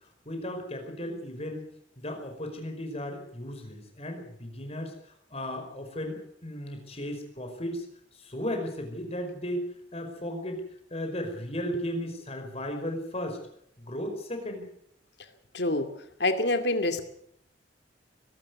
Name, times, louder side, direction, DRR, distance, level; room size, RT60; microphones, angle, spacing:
voice 1, 0.3-1.7 2.0-7.9 8.1-9.7 9.9-10.6 10.9-13.4 13.8-14.7, equal, 35° left, 4 dB, 5.2 m, -35 dB
voice 2, 15.5-15.9 16.2-17.0, left 2 dB, 65° left, 8 dB, 2.4 m, -26 dB
22.5 x 12.5 x 9.6 m, 0.70 s
head